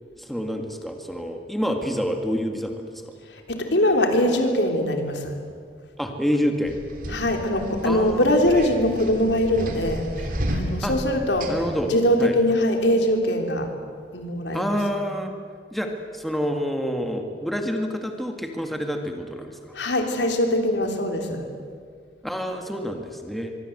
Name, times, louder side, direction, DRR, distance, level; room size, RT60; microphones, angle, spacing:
voice 1, 0.2-2.9 6.0-6.8 7.9-8.2 10.8-10.9 11.5-11.9 12.2-12.3 14.5-15.3 15.7-19.7 22.2-23.5, equal, ahead, 3 dB, 2.0 m, -27 dB
voice 2, 3.3-5.4 7.1-11.6 11.8-13.7 14.1-14.7 19.7-21.5, left 1 dB, 80° left, 4 dB, 3.4 m, -22 dB
sound 1, 6.7-11.9, equal, 50° right, 3.4 m, -32 dB
25.0 x 23.5 x 8.0 m, 2.1 s
head